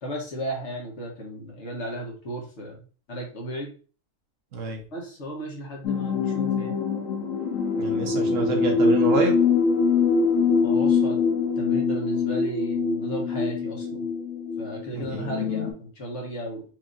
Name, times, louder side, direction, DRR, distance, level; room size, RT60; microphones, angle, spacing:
voice 1, 0.0-2.8 3.1-3.7 4.9-6.8 10.6-11.2 11.6-14.1 14.6-16.6, right 1 dB, 60° left, -1 dB, 1.6 m, -34 dB
voice 2, 4.5-4.8 7.8-9.4 15.0-15.3, right 2 dB, 70° right, 2 dB, 1.3 m, -28 dB
sound 1, 5.8-15.7, left 4 dB, 80° left, 1.2 m, -24 dB
4.5 x 2.9 x 2.5 m, 0.38 s
omnidirectional pair, 1.4 m